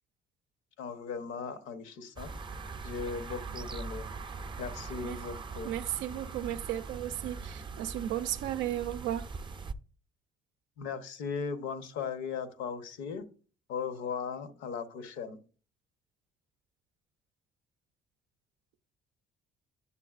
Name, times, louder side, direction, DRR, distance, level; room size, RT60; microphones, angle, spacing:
voice 1, 0.8-2.3 2.8-4.1 4.6-5.8 10.8-13.2 13.7-15.4, left 6 dB, 80° left, 0.9 m, -37 dB
sound 1, 2.2-9.7, right 4 dB, 25° right, 0.5 m, -41 dB
voice 2, 5.6-9.3, right 12 dB, 75° right, 0.4 m, -34 dB
8.5 x 7.0 x 2.4 m
supercardioid pair, 75°, 19 cm